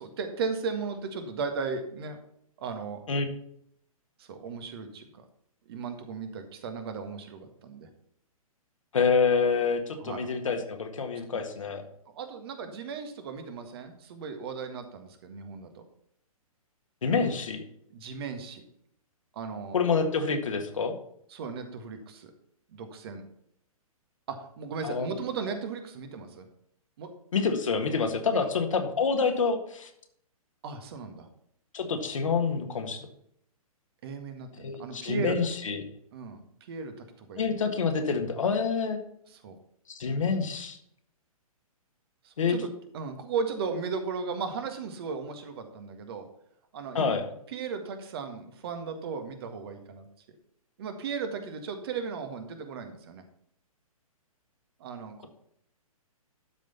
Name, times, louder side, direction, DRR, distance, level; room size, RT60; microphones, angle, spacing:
voice 1, 0.0-2.2 2.6-3.0 4.2-5.2 5.7-7.9 10.0-10.3 11.3-11.4 12.1-15.8 17.9-18.6 19.3-19.8 21.3-22.3 22.7-23.3 24.3-26.5 27.0-27.1 28.3-28.5 30.6-31.3 34.0-35.4 36.1-37.5 39.3-39.6 42.2-42.7 42.9-46.3 46.7-47.2 47.5-50.0 50.8-53.2 54.8-55.3, right 5 dB, 40° right, 7 dB, 1.7 m, -36 dB
voice 2, 8.9-11.8 17.0-17.6 19.7-20.9 24.8-25.1 27.3-29.9 31.7-33.1 34.6-35.8 37.4-39.0 40.0-40.8 42.4-42.6 46.9-47.3, left 5 dB, 60° left, 5 dB, 1.9 m, -27 dB
12.0 x 5.3 x 5.6 m, 0.71 s
figure-of-eight pair, 120°, 19 cm